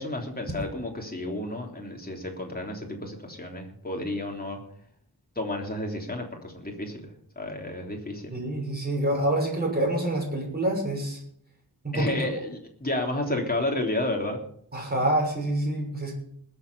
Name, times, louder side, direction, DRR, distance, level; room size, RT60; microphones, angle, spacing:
voice 1, 0.0-4.6 5.4-8.3 11.9-14.4, left 1 dB, 25° left, 1 dB, 3.5 m, -31 dB
voice 2, 8.3-11.2 11.8-12.2 14.7-16.1, right 1 dB, 25° right, -1 dB, 6.4 m, -27 dB
20.5 x 7.8 x 5.5 m, 0.64 s
wide cardioid pair, 95°, 38 cm